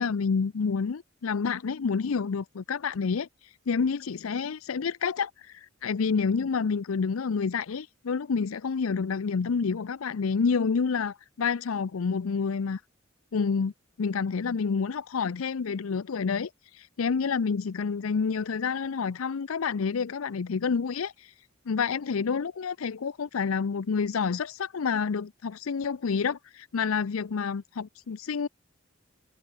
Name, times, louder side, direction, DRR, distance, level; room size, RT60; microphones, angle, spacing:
voice 1, 0.0-3.3 3.7-12.8 13.3-13.7 14.0-21.3 21.7-28.5, left 5 dB, 90° left, 0.5 m, -28 dB
head